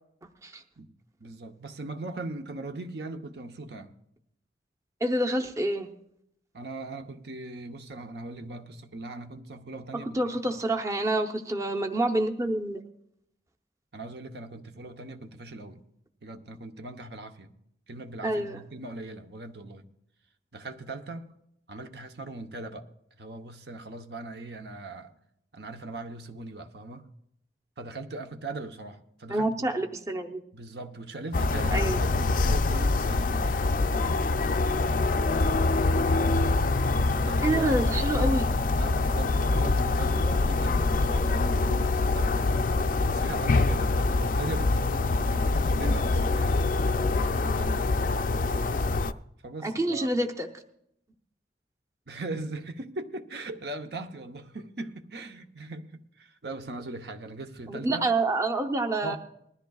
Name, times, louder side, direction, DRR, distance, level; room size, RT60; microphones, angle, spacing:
voice 1, 1.2-3.9 6.5-10.4 13.9-15.8 16.2-17.5 17.9-19.9 20.5-21.4 21.7-22.9 23.2-25.1 25.5-27.1 27.8-29.7 30.5-33.7 36.7-37.7 38.8-46.5 47.6-47.9 49.4-50.1 52.1-58.1 59.0-59.2, right 2 dB, 60° right, 0.9 m, -39 dB
voice 2, 5.0-5.9 10.1-12.8 18.2-18.6 29.3-30.4 31.7-32.0 37.4-38.5 49.6-50.5 57.7-59.2, right 1 dB, 15° right, 0.8 m, -27 dB
sound 1, 31.3-49.1, left 3 dB, 45° left, 0.4 m, -25 dB
20.0 x 13.5 x 2.4 m
head